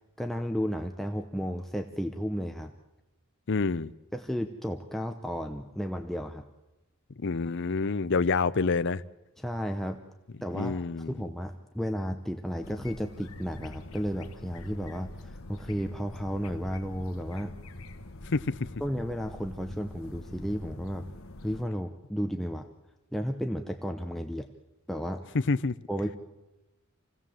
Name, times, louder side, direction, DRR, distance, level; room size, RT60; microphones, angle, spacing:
voice 1, 0.2-2.7 4.1-6.4 9.4-10.0 10.4-17.6 18.8-21.1 21.4-22.7 23.1-24.5 24.9-25.4 25.9-26.2, equal, ahead, 0.9 m, -33 dB
voice 2, 3.5-3.9 7.2-9.0 10.5-11.1 18.3-18.7 25.3-25.8, left 4 dB, 60° left, 0.7 m, -27 dB
sound 1, 12.6-21.6, left 2 dB, 75° left, 1.4 m, -44 dB
28.0 x 17.0 x 7.5 m
head